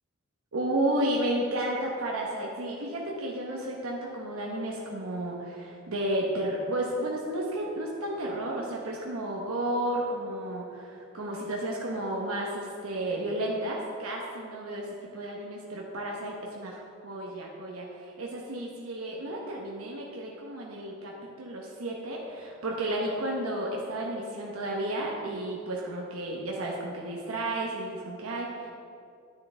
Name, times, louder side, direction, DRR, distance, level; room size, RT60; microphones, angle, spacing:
voice 1, 0.5-28.7, right 1 dB, 85° right, -2 dB, 1.0 m, -32 dB
9.8 x 9.7 x 3.3 m, 2.5 s
head